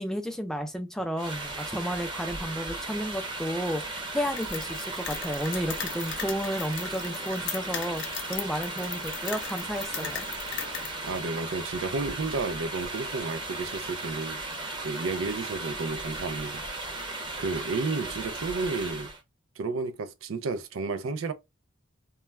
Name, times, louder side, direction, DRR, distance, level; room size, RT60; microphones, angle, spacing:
voice 1, 0.0-10.3, equal, ahead, 0.3 m, -32 dB
sound 1, 1.2-19.2, right 2 dB, 25° right, 0.8 m, -36 dB
sound 2, 4.2-10.9, left 8 dB, 60° left, 0.5 m, -38 dB
voice 2, 11.0-16.7 17.4-19.1 19.6-21.3, right 3 dB, 80° right, 0.4 m, -32 dB
2.3 x 2.2 x 3.1 m
head